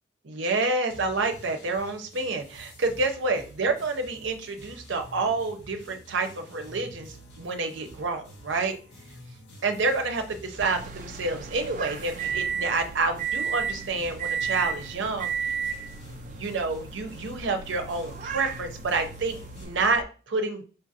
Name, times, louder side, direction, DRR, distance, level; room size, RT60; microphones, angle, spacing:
voice 1, 0.2-8.8 9.6-15.3 16.3-20.6, right 3 dB, 85° right, 5 dB, 0.6 m, -28 dB
sound 1, 0.9-19.6, equal, 65° left, 0.9 m, -48 dB
sound 2, 10.6-20.0, right 6 dB, 45° right, 0.3 m, -34 dB
5.4 x 2.5 x 2.7 m, 0.38 s
head